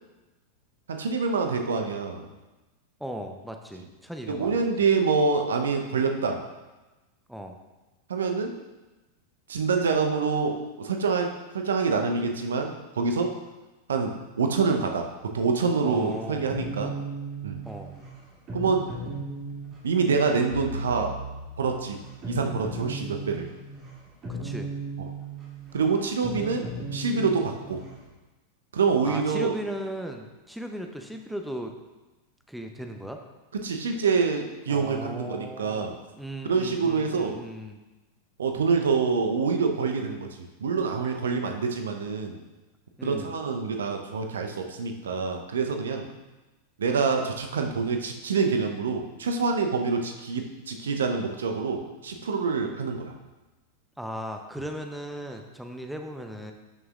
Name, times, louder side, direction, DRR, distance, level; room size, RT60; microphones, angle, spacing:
voice 1, 0.9-2.2 4.3-6.4 8.1-8.6 9.5-13.4 13.9-16.9 17.4-17.6 18.5-18.9 19.8-21.2 21.6-22.0 22.3-23.5 25.7-27.8 28.7-29.6 33.6-36.0 36.4-37.4 38.4-42.4 43.0-46.1 46.8-53.1, right 5 dB, 65° right, 4 dB, 0.8 m, -26 dB
voice 2, 3.0-4.6 7.3-7.6 15.8-16.5 17.6-17.9 24.3-24.7 29.0-31.7 32.5-33.2 34.7-37.8 43.0-43.3 47.6-47.8 54.0-56.5, equal, ahead, 4 dB, 0.7 m, -37 dB
sound 1, 15.9-28.1, right 2 dB, 30° right, 2.5 m, -37 dB
12.0 x 6.2 x 2.4 m, 1.1 s
figure-of-eight pair, 90°, 0 cm